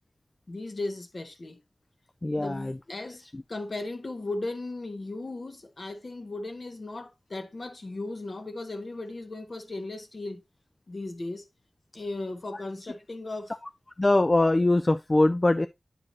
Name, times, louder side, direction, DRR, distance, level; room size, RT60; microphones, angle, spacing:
voice 1, 0.5-1.6 2.4-3.2 3.5-10.4 10.9-11.4 11.9-13.5, left 2 dB, 45° left, 1.3 m, -36 dB
voice 2, 2.2-2.8 3.3-3.4 12.5-12.6 14.0-15.7, left 2 dB, 30° left, 0.4 m, -22 dB
9.6 x 4.9 x 2.8 m
wide cardioid pair, 105°, 0 cm